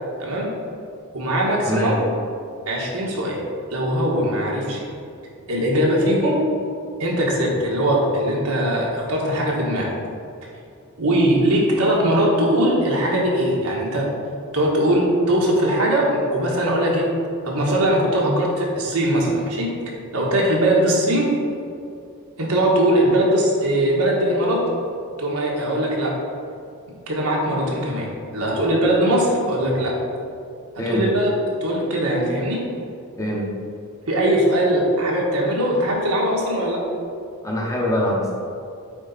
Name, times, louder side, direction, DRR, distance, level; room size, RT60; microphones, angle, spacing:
voice 1, 0.2-0.5 1.1-2.0 2.7-3.4 3.7-4.8 5.5-6.4 7.0-9.9 11.0-14.1 14.5-17.1 17.4-19.7 20.1-21.3 22.4-24.7 25.2-26.1 27.1-29.9 30.9-31.3 31.6-32.6 34.1-36.8, right 1 dB, 85° right, -3 dB, 1.5 m, -20 dB
voice 2, 37.4-38.3, left 1 dB, 15° left, -3 dB, 0.9 m, -23 dB
8.8 x 4.1 x 4.1 m, 2.4 s
head